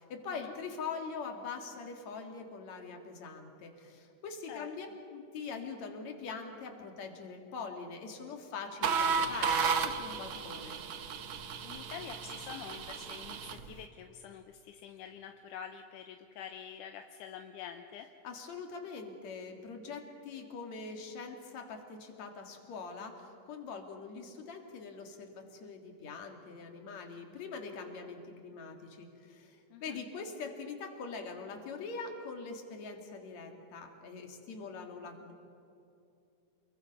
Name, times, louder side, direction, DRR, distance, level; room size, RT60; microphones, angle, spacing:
voice 1, 0.0-10.8 18.2-35.3, left 4 dB, 60° left, 4 dB, 3.3 m, -43 dB
sound 1, 8.8-13.7, right 6 dB, 70° right, 1.2 m, -33 dB
voice 2, 11.6-18.1 29.7-30.0, left 8 dB, 80° left, 6 dB, 2.3 m, -47 dB
28.5 x 22.5 x 5.5 m, 2.7 s
omnidirectional pair, 3.8 m